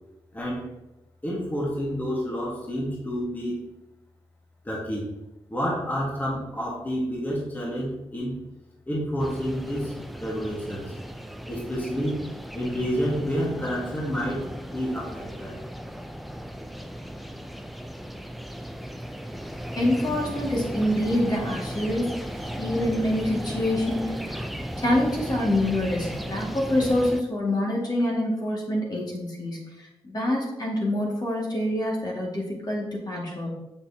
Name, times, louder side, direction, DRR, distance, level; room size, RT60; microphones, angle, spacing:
voice 1, 0.3-0.7 1.2-3.6 4.6-5.1 5.5-8.3 8.9-10.9 11.4-12.2 12.5-15.5, equal, 15° left, -4 dB, 1.7 m, -29 dB
sound 1, 9.2-27.2, equal, ahead, 0.5 m, -36 dB
voice 2, 19.8-22.1 22.5-24.4 24.8-33.5, left 1 dB, 40° left, -3 dB, 2.0 m, -26 dB
6.6 x 5.8 x 2.8 m, 0.95 s
cardioid pair, 70°, 10 cm